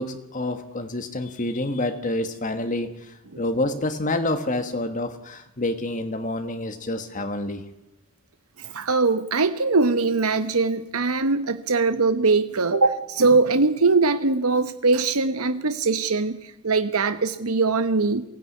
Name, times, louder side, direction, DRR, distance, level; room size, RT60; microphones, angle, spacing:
voice 1, 0.0-7.6, left 1 dB, 35° left, 8 dB, 1.3 m, -28 dB
voice 2, 8.6-18.2, right 3 dB, 90° right, 11 dB, 1.0 m, -21 dB
23.0 x 16.5 x 9.7 m, 0.87 s
head